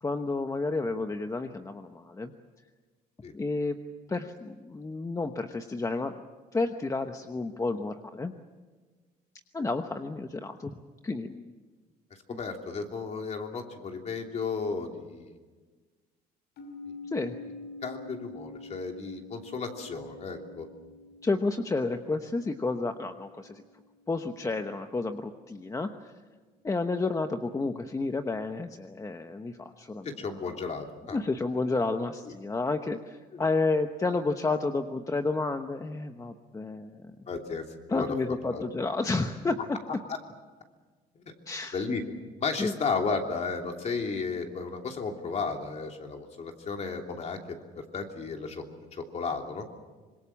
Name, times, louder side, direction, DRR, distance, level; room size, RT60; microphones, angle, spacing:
voice 1, 0.0-2.3 3.3-3.8 4.1-6.1 6.5-8.3 9.5-10.7 11.0-11.5 17.1-17.4 21.2-23.6 24.1-26.1 26.6-30.1 31.1-37.3 37.9-39.8 41.5-41.8 42.6-42.7, left 3 dB, 20° left, 7 dB, 1.1 m, -31 dB
voice 2, 12.3-15.3 16.9-17.0 17.8-20.7 30.0-31.2 32.3-32.4 33.3-33.4 37.3-38.2 38.5-38.6 40.1-40.2 41.1-41.3 41.7-42.0 42.4-48.6 48.9-49.6, left 4 dB, 40° left, 3 dB, 3.1 m, -34 dB
sound 1, 16.6-24.4, left 2 dB, 75° left, 4.9 m, -47 dB
25.5 x 22.0 x 7.3 m, 1.4 s
cardioid pair, 110°, 17 cm